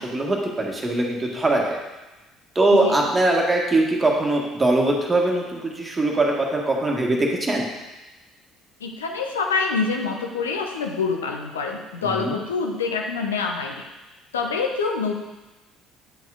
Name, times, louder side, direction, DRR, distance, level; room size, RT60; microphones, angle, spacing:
voice 1, 0.0-1.8 2.5-7.7 12.0-12.4, right 2 dB, 20° right, -1 dB, 1.7 m, -21 dB
voice 2, 8.8-13.8 14.3-15.2, left 4 dB, 75° left, 2 dB, 0.8 m, -26 dB
10.0 x 7.7 x 2.5 m, 1.1 s
figure-of-eight pair, 55°, 0 cm